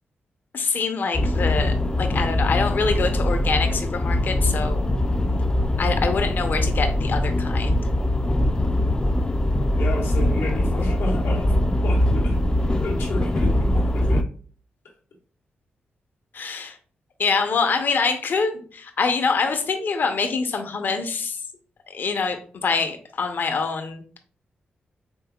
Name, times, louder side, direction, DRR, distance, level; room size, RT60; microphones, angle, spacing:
voice 1, 0.5-4.8 5.8-7.8 16.3-16.8 17.2-21.4 21.9-24.2, left 4 dB, 60° left, 0.7 m, -25 dB
sound 1, 1.1-14.2, left 1 dB, 20° left, 0.4 m, -22 dB
voice 2, 9.8-12.4 12.7-14.3, left 2 dB, 90° left, 1.2 m, -31 dB
5.3 x 3.8 x 2.3 m
cardioid pair, 85°, 4 cm